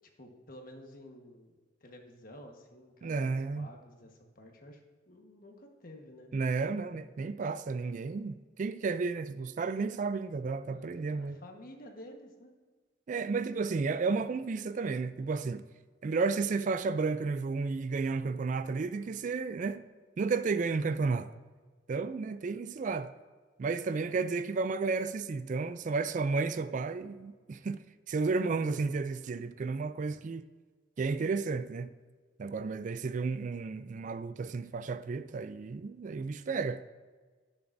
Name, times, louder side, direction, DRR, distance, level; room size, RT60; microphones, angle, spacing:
voice 1, 0.2-1.5 1.8-7.0 10.7-12.5 14.1-14.2 23.9-24.2 28.5-29.0, left 1 dB, 50° left, 1.3 m, -52 dB
voice 2, 3.0-3.7 6.3-11.4 13.1-15.6 16.0-19.8 20.2-21.3 21.9-23.1 23.6-30.4 31.0-31.9 32.4-36.8, right 4 dB, 45° right, 0.3 m, -32 dB
18.0 x 6.9 x 2.6 m
head